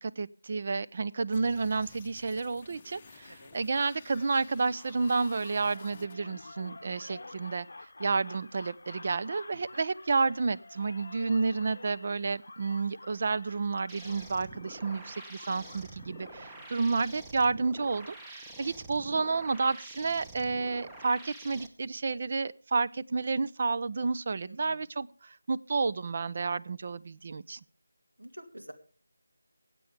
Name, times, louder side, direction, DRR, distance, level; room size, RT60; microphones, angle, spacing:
voice 1, 0.0-7.7 8.0-27.6, right 4 dB, 40° right, 14 dB, 0.5 m, -30 dB
sound 1, 1.3-6.1, left 5 dB, 25° left, 0.7 m, -54 dB
sound 2, 5.0-17.0, left 2 dB, 60° left, 0.7 m, -50 dB
voice 2, 7.0-7.4 11.2-11.4 16.3-16.7 24.4-24.9 28.2-28.7, right 1 dB, 80° right, 5 dB, 2.3 m, -50 dB
sound 3, 13.9-21.7, right 2 dB, 10° right, 1.0 m, -47 dB
24.0 x 8.4 x 3.4 m, 0.39 s
figure-of-eight pair, 165°, 0 cm